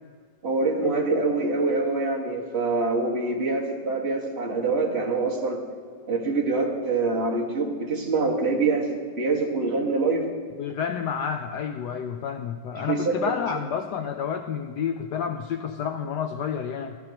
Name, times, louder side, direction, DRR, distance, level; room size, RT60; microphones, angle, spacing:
voice 1, 0.4-5.6 6.1-10.3 12.9-13.1, right 3 dB, 35° right, -2 dB, 2.0 m, -25 dB
voice 2, 10.6-17.0, left 7 dB, 75° left, 7 dB, 1.1 m, -30 dB
19.5 x 13.0 x 3.0 m, 2.1 s
omnidirectional pair, 1.9 m